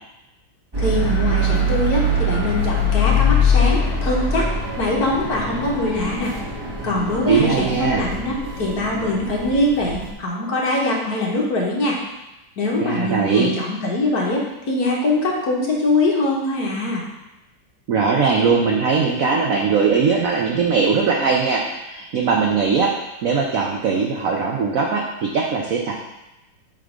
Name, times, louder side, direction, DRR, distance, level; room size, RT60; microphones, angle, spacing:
sound 1, 0.7-10.1, left 2 dB, 15° right, 1.1 m, -22 dB
voice 1, 0.8-4.5 4.8-6.3 6.8-12.0 12.6-17.0, left 2 dB, 55° left, -2 dB, 1.5 m, -22 dB
voice 2, 7.3-8.0 12.8-13.5 17.9-22.9 23.2-25.9, right 5 dB, 70° right, 0 dB, 0.8 m, -20 dB
7.5 x 3.4 x 5.0 m, 0.96 s
omnidirectional pair, 2.2 m